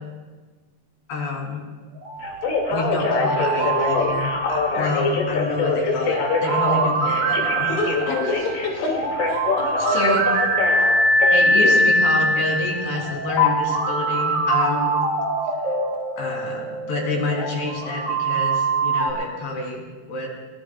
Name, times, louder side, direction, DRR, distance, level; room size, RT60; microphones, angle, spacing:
voice 1, 1.1-1.7 2.7-8.4 9.8-10.5 11.3-15.0 16.2-20.3, left 2 dB, 75° left, -1 dB, 5.2 m, -28 dB
sound 1, 2.0-19.1, right 1 dB, 65° right, 4.7 m, -23 dB
Telephone, 2.2-11.8 13.4-13.5, left 4 dB, 60° left, 3.7 m, -24 dB
voice 2, 4.7-5.0 8.3-10.0 10.8-10.9, left 3 dB, 45° left, 0 dB, 2.9 m, -32 dB
22.5 x 19.5 x 2.3 m, 1.4 s
omnidirectional pair, 4.8 m